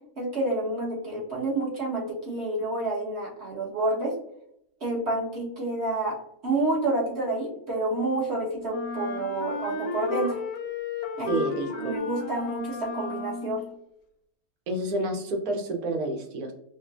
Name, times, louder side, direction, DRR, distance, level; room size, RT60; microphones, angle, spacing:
voice 1, 0.2-4.1 4.8-6.1 6.4-10.4 11.2-11.4 11.8-13.6, right 2 dB, 45° right, -4 dB, 1.4 m, -29 dB
Wind instrument woodwind instrument, 8.7-13.7, left 4 dB, 75° left, 1.0 m, -34 dB
voice 2, 11.3-12.0 14.7-16.5, right 2 dB, 75° right, 3 dB, 1.3 m, -29 dB
5.2 x 2.2 x 2.4 m, 0.75 s
omnidirectional pair, 1.6 m